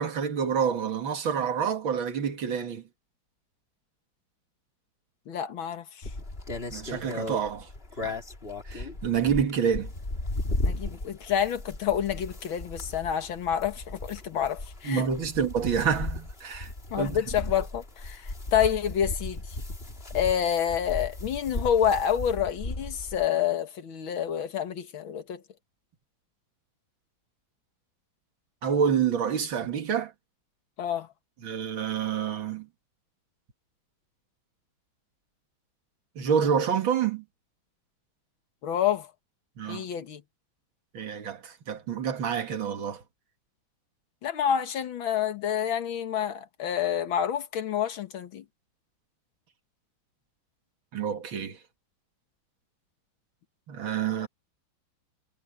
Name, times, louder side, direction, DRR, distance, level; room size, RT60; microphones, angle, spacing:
voice 1, 0.0-2.8 6.7-7.7 8.0-8.2 8.7-9.9 14.8-16.7 17.0-17.2 28.6-30.1 31.4-32.7 36.2-37.2 39.6-39.8 40.9-43.0 50.9-51.6 53.7-54.3, right 7 dB, 80° right, 2.6 m, -28 dB
voice 2, 5.3-6.1 10.6-15.1 16.9-19.6 20.1-25.4 30.8-31.1 38.6-39.1 39.7-40.2 44.2-48.4, left 9 dB, 85° left, 2.2 m, -28 dB
sound 1, 6.0-23.3, left 2 dB, 30° left, 3.2 m, -36 dB
omnidirectional pair, 2.1 m